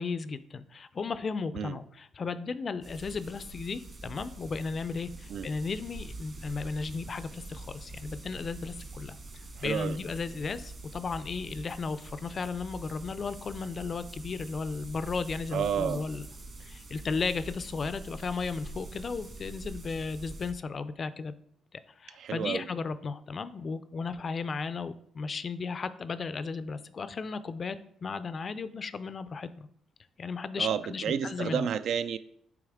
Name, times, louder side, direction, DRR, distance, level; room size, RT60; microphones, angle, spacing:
voice 1, 0.0-9.2 9.6-16.3 16.6-21.3 21.7-29.7 30.2-31.7, left 4 dB, 40° left, 13 dB, 0.4 m, -35 dB
sound 1, 2.8-20.5, right 2 dB, 40° right, 1.5 m, -45 dB
voice 2, 9.6-10.0 15.5-16.0 22.1-22.7 30.6-32.2, right 8 dB, 70° right, 12 dB, 0.3 m, -31 dB
8.4 x 3.2 x 3.5 m, 0.69 s
cardioid pair, 90°, 0 cm